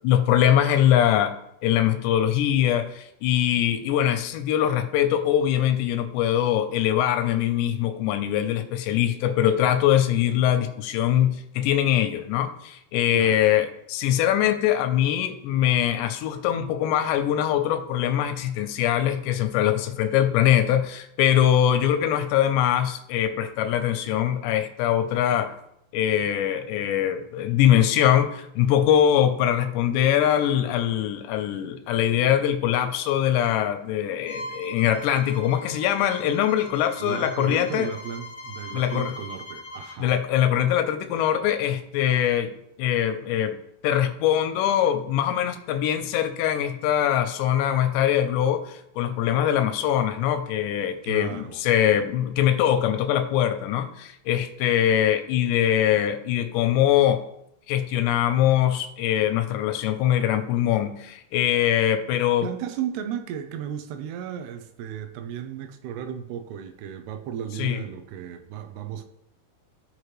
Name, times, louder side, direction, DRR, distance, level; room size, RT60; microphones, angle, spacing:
voice 1, 0.0-1.3 1.6-25.6 25.9-37.9 38.7-39.1 40.0-43.6 43.8-57.2 57.7-62.5 67.6-67.8, left 10 dB, 85° left, 8 dB, 2.8 m, -22 dB
voice 2, 13.1-13.4 37.0-40.1 51.0-51.6 62.4-69.0, right 9 dB, 80° right, 8 dB, 2.5 m, -34 dB
Bowed string instrument, 34.2-40.0, left 1 dB, 55° left, 0.9 m, -41 dB
14.5 x 4.9 x 3.2 m, 0.77 s
omnidirectional pair, 5.0 m